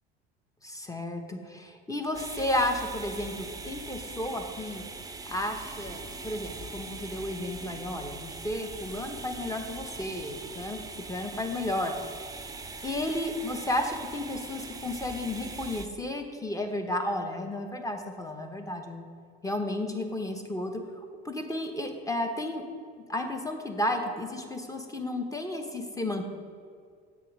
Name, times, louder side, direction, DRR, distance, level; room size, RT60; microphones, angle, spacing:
voice 1, 0.6-4.8 5.3-10.8 11.1-11.9 12.8-19.0 19.4-22.6 23.1-26.3, left 1 dB, 10° left, 5 dB, 1.0 m, -33 dB
sound 1, 2.1-15.9, right 3 dB, 10° right, 0.5 m, -41 dB
7.5 x 3.5 x 6.1 m, 2.2 s
hypercardioid pair, 70°, 30 cm